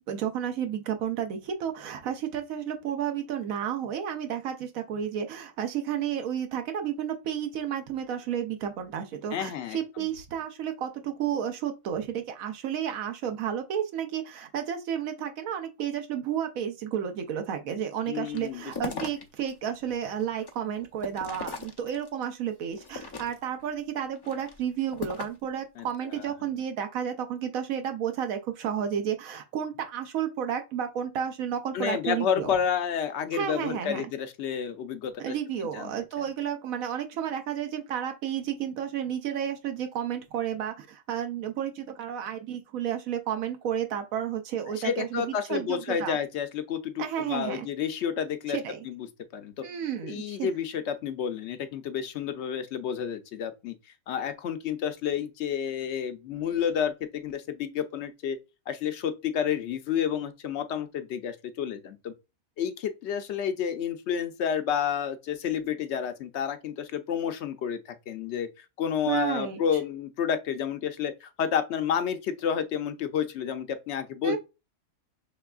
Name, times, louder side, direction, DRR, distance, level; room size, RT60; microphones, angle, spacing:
voice 1, 0.1-32.5 33.3-34.1 35.2-46.2 47.0-47.7 48.5-48.8 49.6-50.5 69.1-69.6 74.2-74.4, right 9 dB, 90° right, 1.1 m, -32 dB
voice 2, 9.3-9.8 18.1-19.0 25.8-26.2 31.7-35.1 35.7-35.9 44.8-48.6 48.8-49.1 49.3-49.6 50.0-53.7 54.1-58.4 58.7-62.1 62.6-67.8 68.1-74.4, left 8 dB, 65° left, 0.8 m, -30 dB
sound 1, 18.3-19.5 19.9-22.2 22.8-23.6 24.1-25.5, left 4 dB, 40° left, 0.3 m, -39 dB
5.9 x 3.3 x 2.3 m
omnidirectional pair, 1.4 m